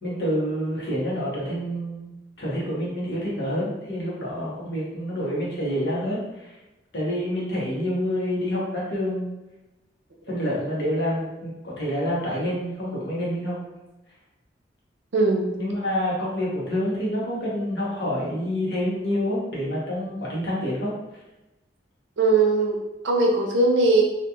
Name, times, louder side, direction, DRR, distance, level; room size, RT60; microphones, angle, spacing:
voice 1, 0.0-6.6 6.9-9.3 10.3-13.6 15.6-20.9, equal, 70° left, -6 dB, 1.0 m, -27 dB
voice 2, 15.1-15.6 22.2-22.8 23.0-24.0, right 3 dB, 90° right, 0 dB, 0.6 m, -20 dB
2.8 x 2.4 x 2.3 m, 1.0 s
head